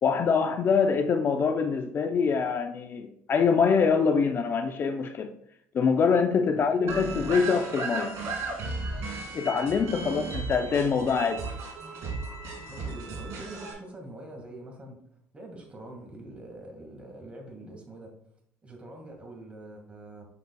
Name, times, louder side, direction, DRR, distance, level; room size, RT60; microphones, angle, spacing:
voice 1, 0.0-5.3 5.7-8.1 9.3-11.4, left 5 dB, 45° left, 0.5 m, -24 dB
sound 1, 6.9-13.7, right 3 dB, 60° right, 2.4 m, -35 dB
voice 2, 10.0-10.4 11.3-11.4 12.7-15.0 15.3-18.1 18.6-20.2, right 2 dB, 20° right, 1.9 m, -44 dB
6.7 x 6.3 x 2.3 m
cardioid pair, 105°, 6 cm